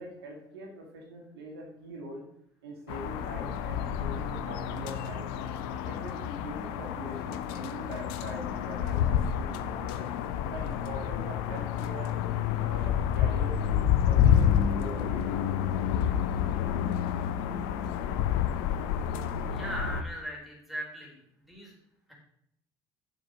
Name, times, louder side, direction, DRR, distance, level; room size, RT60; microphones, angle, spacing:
voice 1, 0.0-2.2 2.6-5.3 5.8-10.0 10.5-12.2 12.5-13.6 14.0-15.4, right 2 dB, 75° right, 0 dB, 2.1 m, -43 dB
sound 1, 2.9-20.0, left 9 dB, 65° left, 0.7 m, -29 dB
voice 2, 19.5-21.2 21.5-21.7 22.1-22.2, equal, ahead, -1 dB, 4.2 m, -38 dB
7.2 x 7.2 x 5.9 m, 0.74 s
figure-of-eight pair, 55°, 13 cm